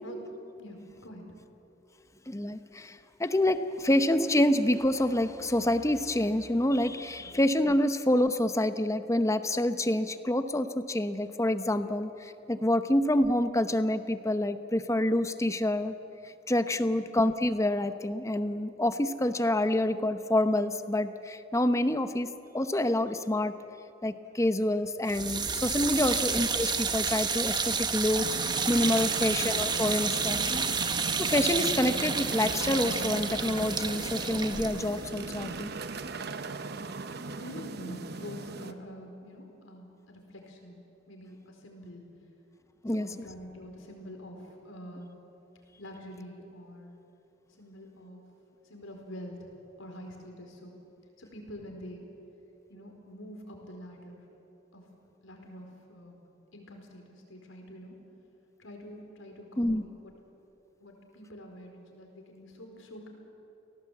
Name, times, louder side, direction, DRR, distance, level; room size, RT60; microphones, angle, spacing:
voice 1, 0.6-1.2 7.2-7.3 36.6-36.9 37.3-40.8 41.1-42.0 42.9-45.1 45.8-47.0 47.6-48.2 48.6-49.5 49.8-50.7 51.2-52.1 52.7-54.2 54.7-54.8 55.2-56.2 56.5-58.0 58.6-60.1 60.8-63.1, equal, 85° left, 2 dB, 4.7 m, -46 dB
voice 2, 2.3-15.9 16.5-22.3 22.5-23.5 24.0-30.7 31.2-35.7 42.8-43.1 59.6-59.8, left 1 dB, 15° left, 10 dB, 0.9 m, -27 dB
sound 1, 25.1-36.1, right 5 dB, 20° right, 1.2 m, -30 dB
sound 2, 28.2-38.7, right 3 dB, 55° right, 0.9 m, -38 dB
28.5 x 18.0 x 8.4 m, 3.0 s
head